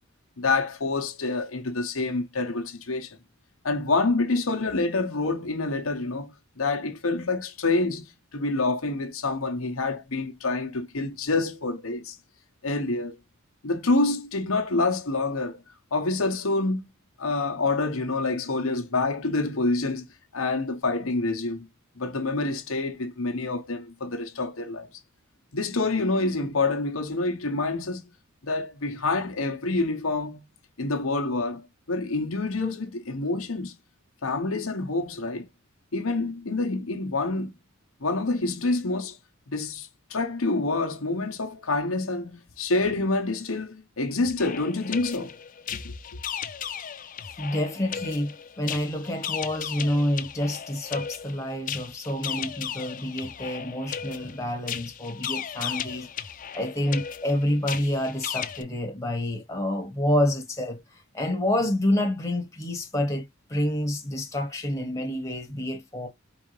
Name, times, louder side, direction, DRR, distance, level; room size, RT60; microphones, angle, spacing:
voice 1, 0.4-3.2 3.6-12.2 12.6-13.2 13.6-15.6 15.9-16.8 17.2-20.1 20.3-21.7 21.9-24.9 25.5-28.1 28.4-30.4 30.8-33.7 34.2-35.5 35.9-37.5 38.0-39.2 39.5-45.4 45.7-45.9, left 3 dB, 85° left, 1.0 m, -27 dB
sound 1, 44.2-58.6, left 8 dB, 40° left, 0.5 m, -36 dB
voice 2, 47.4-56.1 56.5-66.1, left 1 dB, 15° left, 1.4 m, -28 dB
4.8 x 3.5 x 3.2 m
head